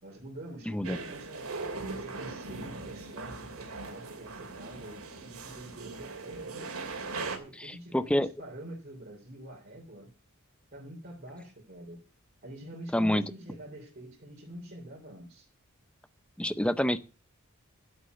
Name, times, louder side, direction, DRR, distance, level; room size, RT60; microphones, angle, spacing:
voice 1, 0.0-1.5 1.9-6.8 7.4-10.1 10.7-12.0 12.4-15.5, right 1 dB, 45° right, -3 dB, 3.7 m, -46 dB
voice 2, 0.7-1.0 7.6-8.3 12.9-13.2 16.4-17.0, left 1 dB, 5° left, 14 dB, 0.6 m, -27 dB
sound 1, 0.8-7.4, right 3 dB, 70° right, 2.7 m, -40 dB
10.5 x 8.3 x 6.6 m, 0.35 s
head